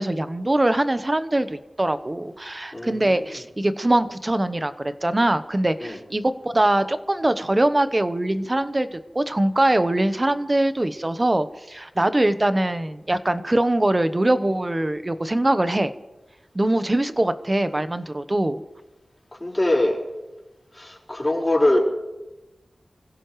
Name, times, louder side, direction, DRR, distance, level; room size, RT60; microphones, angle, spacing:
voice 1, 0.0-15.9 16.5-18.6, right 1 dB, 25° right, 11 dB, 0.9 m, -22 dB
voice 2, 2.7-3.3 5.8-6.0 19.4-20.0 20.7-21.8, left 1 dB, 25° left, -3 dB, 4.9 m, -22 dB
27.0 x 16.5 x 3.2 m, 1.0 s
wide cardioid pair, 80°, 0 cm